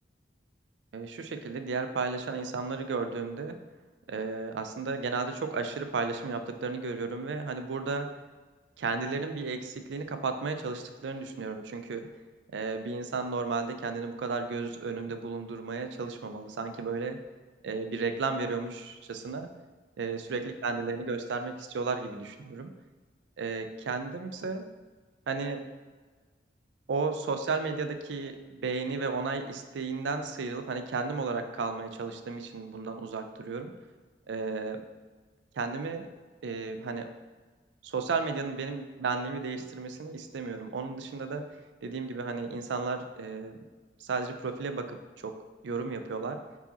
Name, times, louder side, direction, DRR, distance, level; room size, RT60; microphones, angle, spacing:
voice 1, 0.9-3.6 4.1-8.1 8.8-12.1 12.5-17.2 17.6-19.5 20.0-22.7 23.4-24.6 25.3-25.6 26.9-33.7 34.3-34.8 35.5-36.1 36.4-37.1 37.8-41.4 41.8-43.6 44.0-45.0 45.2-45.3 45.6-46.4, right 4 dB, 85° right, 7 dB, 0.4 m, -33 dB
4.6 x 2.8 x 3.9 m, 1.3 s
head